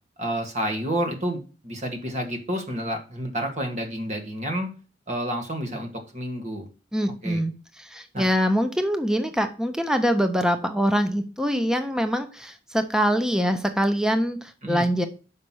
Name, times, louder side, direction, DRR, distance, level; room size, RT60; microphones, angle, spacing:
voice 1, 0.2-1.4 1.6-4.7 5.1-6.7 7.2-7.4 8.1-8.3 14.6-14.9, right 1 dB, 40° right, 4 dB, 2.1 m, -29 dB
voice 2, 6.9-7.5 7.8-15.1, equal, 5° right, 8 dB, 0.7 m, -24 dB
6.5 x 5.8 x 6.3 m, 0.34 s
head